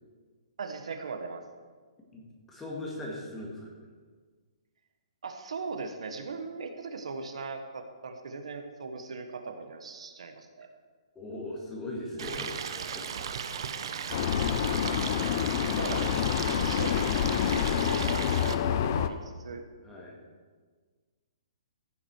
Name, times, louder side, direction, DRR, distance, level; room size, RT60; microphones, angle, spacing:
voice 1, 0.6-1.5 5.2-10.7 15.1-15.2 15.8-16.0 16.5-17.2 17.5-19.6, right 4 dB, 85° right, 6 dB, 1.3 m, -39 dB
voice 2, 2.1-3.7 11.2-13.3 15.9-16.0 19.8-20.2, left 1 dB, 10° left, -3 dB, 1.9 m, -40 dB
Stream, 12.2-18.5, right 7 dB, 50° right, 0.8 m, -36 dB
Vehicle, 14.1-19.1, left 9 dB, 35° left, 0.5 m, -27 dB
15.0 x 7.5 x 4.7 m, 1.5 s
hypercardioid pair, 170°, 3 cm